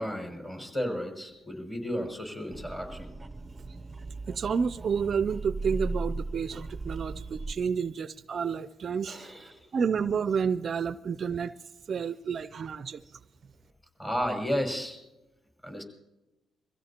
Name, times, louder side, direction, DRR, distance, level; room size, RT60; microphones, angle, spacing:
voice 1, 0.0-3.1 9.1-9.5 14.0-15.0 15.6-15.8, equal, 15° left, 5.8 m, -33 dB
sound 1, 2.5-7.5, right 2 dB, 15° right, 0.7 m, -37 dB
voice 2, 4.3-11.5 11.9-13.0, right 6 dB, 50° right, 0.4 m, -30 dB
24.0 x 16.0 x 2.9 m
cardioid pair, 90°, 0 cm